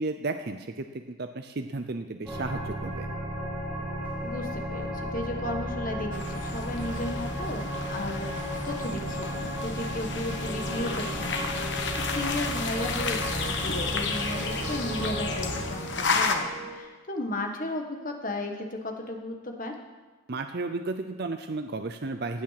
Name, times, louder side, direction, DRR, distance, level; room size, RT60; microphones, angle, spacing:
voice 1, 0.0-3.1 20.3-22.4, right 3 dB, 50° right, 7 dB, 0.6 m, -33 dB
sound 1, 2.3-15.6, equal, 10° right, 2.7 m, -34 dB
voice 2, 4.2-8.3 8.6-19.7, left 1 dB, 40° left, 3 dB, 1.5 m, -35 dB
sound 2, 6.1-16.3, left 5 dB, 55° left, 1.2 m, -33 dB
sound 3, 10.4-16.8, right 2 dB, 30° right, 1.7 m, -43 dB
15.5 x 8.8 x 5.9 m, 1.3 s
head